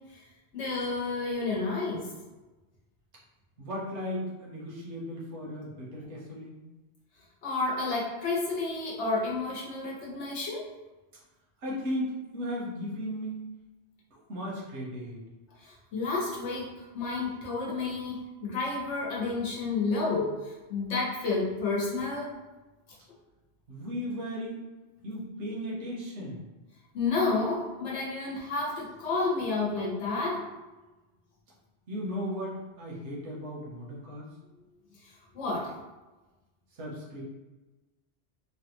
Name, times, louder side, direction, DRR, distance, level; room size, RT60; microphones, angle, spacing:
voice 1, 0.5-2.1 7.4-10.7 15.6-22.3 26.9-30.4 35.3-35.7, left 3 dB, 80° left, -4 dB, 1.1 m, -30 dB
voice 2, 3.6-6.6 11.6-13.4 14.1-15.2 23.7-24.6 25.0-26.4 31.9-34.3 36.7-37.2, equal, 80° right, -4 dB, 1.2 m, -36 dB
3.2 x 2.3 x 2.9 m, 1.1 s
omnidirectional pair, 1.2 m